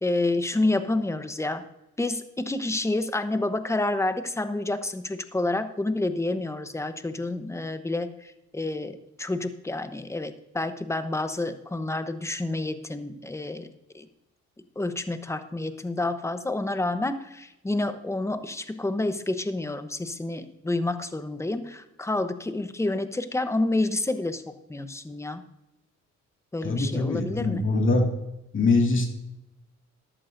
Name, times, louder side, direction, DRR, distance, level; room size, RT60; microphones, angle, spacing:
voice 1, 0.0-1.6 2.0-13.7 13.9-14.1 14.8-24.4 24.7-25.4 26.5-27.6, left 2 dB, 10° left, 10 dB, 0.9 m, -29 dB
voice 2, 26.6-28.1 28.5-29.1, left 3 dB, 40° left, 1 dB, 2.3 m, -23 dB
14.0 x 11.0 x 2.6 m, 0.92 s
cardioid pair, 90°, 30 cm